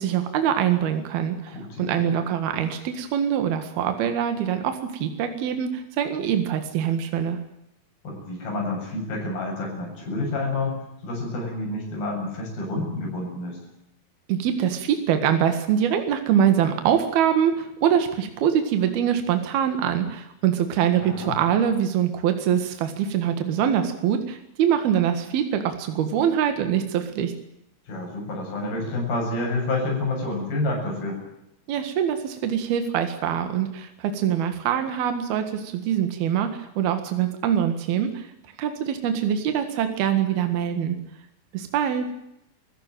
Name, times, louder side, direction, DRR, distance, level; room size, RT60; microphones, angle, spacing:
voice 1, 0.0-7.4 14.3-27.3 31.7-38.3 38.6-41.0 41.5-42.1, right 9 dB, 75° right, 7 dB, 3.6 m, -24 dB
voice 2, 1.5-2.1 8.0-13.6 21.0-21.4 27.9-31.2, left 2 dB, 65° left, 0 dB, 9.2 m, -29 dB
26.5 x 16.0 x 9.1 m, 0.82 s
omnidirectional pair, 4.5 m